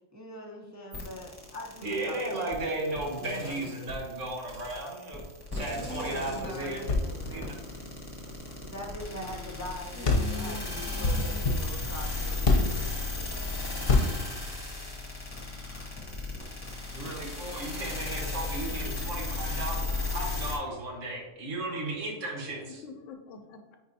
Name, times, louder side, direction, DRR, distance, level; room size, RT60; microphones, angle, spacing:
voice 1, 0.1-4.0 5.7-7.8 8.6-13.8, equal, 20° right, -1 dB, 0.4 m, -43 dB
sound 1, 0.9-20.6, left 3 dB, 20° left, 1.2 m, -36 dB
voice 2, 1.8-5.2 5.5-6.8 7.3-7.5 16.9-22.8, right 2 dB, 70° right, -1 dB, 1.6 m, -35 dB
sound 2, 6.8-9.3 9.6-9.7 10.0-12.9 13.8-14.3, left 3 dB, 50° left, 1.0 m, -28 dB
voice 3, 9.1-9.6 9.9-11.6 22.6-23.8, left 3 dB, 80° left, 6 dB, 1.0 m, -44 dB
9.2 x 4.4 x 2.7 m, 1.2 s
omnidirectional pair, 1.3 m